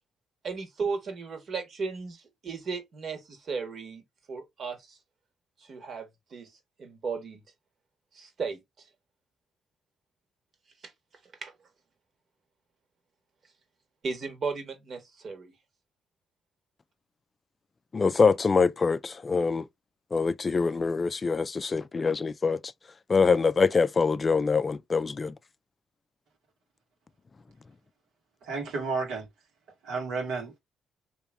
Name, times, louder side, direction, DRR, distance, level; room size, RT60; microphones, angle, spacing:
voice 1, 0.4-4.0 4.3-5.0 5.6-6.5 6.8-7.4 8.1-8.6 11.4-11.5 14.0-15.5, right 5 dB, 55° right, 1.5 m, -35 dB
voice 2, 17.9-19.7 20.1-22.6 23.1-25.3, left 4 dB, 35° left, 0.3 m, -24 dB
voice 3, 28.4-29.3 29.8-30.6, right 4 dB, 90° right, 1.6 m, -32 dB
3.4 x 3.0 x 3.5 m
cardioid pair, 90°, 0 cm